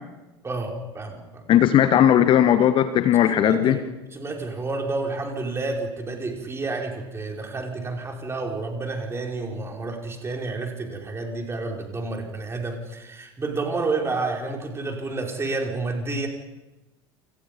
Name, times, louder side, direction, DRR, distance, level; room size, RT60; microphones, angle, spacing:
voice 1, 0.4-1.4 3.3-3.8 4.1-16.3, right 3 dB, 20° right, 2 dB, 5.3 m, -30 dB
voice 2, 1.5-3.8, left 10 dB, 35° left, 11 dB, 1.3 m, -17 dB
28.5 x 28.0 x 5.4 m, 1.1 s
figure-of-eight pair, 75°, 14 cm